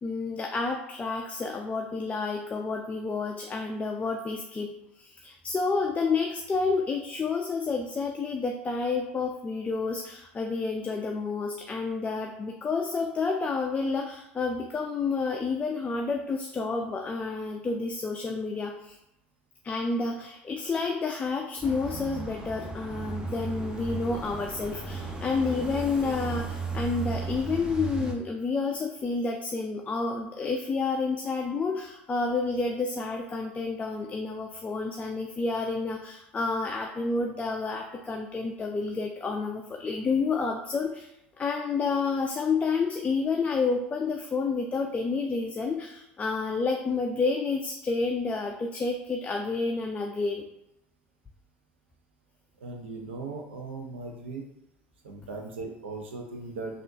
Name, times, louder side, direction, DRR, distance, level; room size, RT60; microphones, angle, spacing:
voice 1, 0.0-19.0 19.6-41.1 41.4-50.4, left 4 dB, 25° left, 2 dB, 0.4 m, -30 dB
sound 1, 21.6-28.1, right 3 dB, 15° right, 0.6 m, -35 dB
voice 2, 52.6-54.4 55.0-56.8, right 3 dB, 80° right, 1 dB, 0.6 m, -38 dB
3.6 x 2.4 x 2.6 m, 0.85 s
hypercardioid pair, 70°, 6 cm